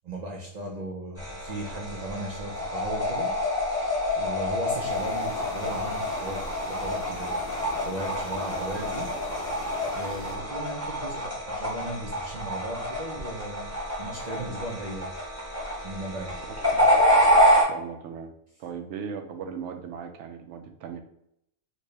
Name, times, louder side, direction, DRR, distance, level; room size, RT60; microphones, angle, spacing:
voice 1, 0.0-3.3 4.2-6.4 6.7-7.4 7.9-9.1 10.0-15.1 15.8-16.4 17.4-17.6, right 1 dB, 85° right, -1 dB, 0.3 m, -37 dB
sound 1, 1.2-17.6, equal, 15° right, 0.8 m, -27 dB
sound 2, 4.7-10.4, left 3 dB, 70° left, 1.0 m, -42 dB
voice 2, 17.6-18.3 18.6-21.0, right 6 dB, 65° right, 5 dB, 0.8 m, -38 dB
4.2 x 2.1 x 3.2 m, 0.75 s
omnidirectional pair, 1.4 m